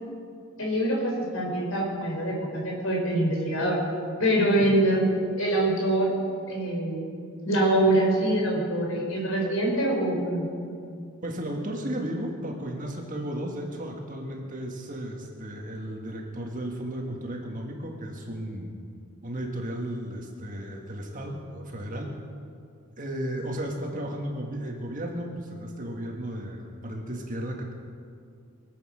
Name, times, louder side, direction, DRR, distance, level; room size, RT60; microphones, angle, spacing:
voice 1, 0.6-3.8 4.2-5.1 5.4-6.2 6.5-7.1 7.4-10.5, right 1 dB, 70° left, -1 dB, 4.4 m, -24 dB
voice 2, 11.2-18.7 19.2-22.1 23.0-27.7, right 1 dB, 35° right, 1 dB, 1.9 m, -34 dB
23.5 x 8.5 x 6.5 m, 2.3 s
head